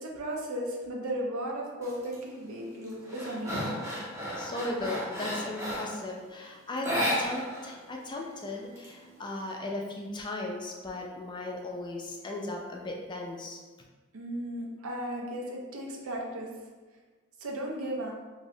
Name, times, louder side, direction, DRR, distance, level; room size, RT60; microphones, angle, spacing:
voice 1, 0.0-3.8 14.1-16.5 17.4-18.1, right 1 dB, 90° right, -1 dB, 0.6 m, -35 dB
sound 1, 1.8-2.2 2.6-6.0 6.8-7.7 8.0-8.1 8.5-9.4, equal, 15° right, 0.6 m, -33 dB
voice 2, 4.1-13.6, left 2 dB, 20° left, 0 dB, 0.3 m, -37 dB
3.1 x 2.7 x 2.7 m, 1.4 s
head